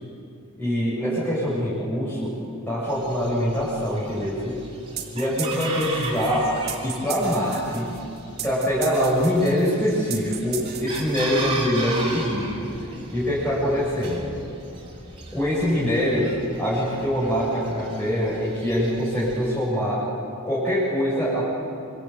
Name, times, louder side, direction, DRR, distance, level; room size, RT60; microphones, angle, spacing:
voice 1, 0.6-2.3 2.7-4.6 5.1-6.5 6.8-8.0 8.4-12.7 13.1-14.3 15.3-20.0 20.4-21.5, equal, 5° left, -9 dB, 6.9 m, -24 dB
Chicken rooster, 2.9-19.5, right 2 dB, 25° right, 5.5 m, -37 dB
sound 1, 5.0-11.7, right 10 dB, 45° right, 3.0 m, -36 dB
26.5 x 26.5 x 8.1 m, 2.7 s
head